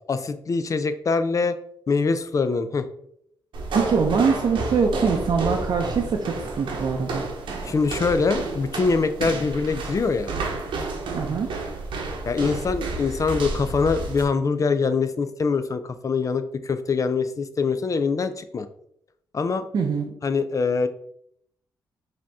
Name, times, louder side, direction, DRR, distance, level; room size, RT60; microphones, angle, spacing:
voice 1, 0.1-1.6 1.9-2.9 7.6-10.3 12.3-18.7 19.3-19.7 20.2-20.9, left 4 dB, 40° left, 11 dB, 0.5 m, -24 dB
sound 1, 3.5-14.3, right 3 dB, 80° right, 1.0 m, -30 dB
voice 2, 3.7-7.3 11.1-11.5 19.7-20.1, right 5 dB, 60° right, 1 dB, 0.6 m, -23 dB
5.0 x 2.8 x 3.5 m, 0.70 s
cardioid pair, 70°, 8 cm